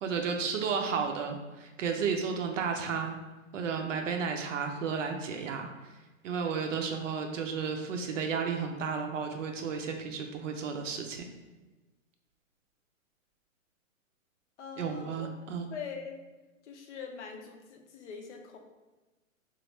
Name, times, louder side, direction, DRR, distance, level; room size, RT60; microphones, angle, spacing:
voice 1, 0.0-3.2 3.5-5.7 6.2-11.3 14.8-15.7, right 6 dB, 65° right, 4 dB, 0.5 m, -33 dB
voice 2, 14.6-15.3 15.7-16.3 16.6-18.6, left 6 dB, 55° left, 3 dB, 0.6 m, -43 dB
3.0 x 2.4 x 3.1 m, 1.2 s
hypercardioid pair, 160°, 41 cm